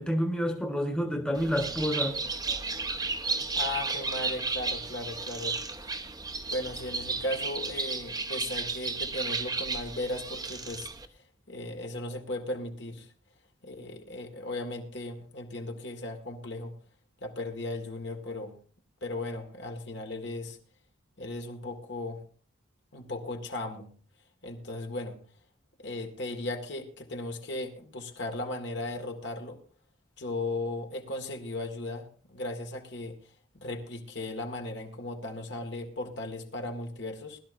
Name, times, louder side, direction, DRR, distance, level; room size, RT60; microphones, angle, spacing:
voice 1, 0.0-2.2, equal, 5° left, 1.4 m, -29 dB
Bird, 1.3-11.1, right 4 dB, 20° right, 0.9 m, -33 dB
voice 2, 3.5-5.6 6.5-10.9 11.1-13.1 13.6-16.7 17.2-18.6 19.0-20.6 21.2-22.2 22.9-23.9 24.4-25.2 25.8-29.6 30.2-33.2 33.5-37.4, left 2 dB, 60° left, 2.1 m, -36 dB
21.0 x 12.5 x 2.7 m
head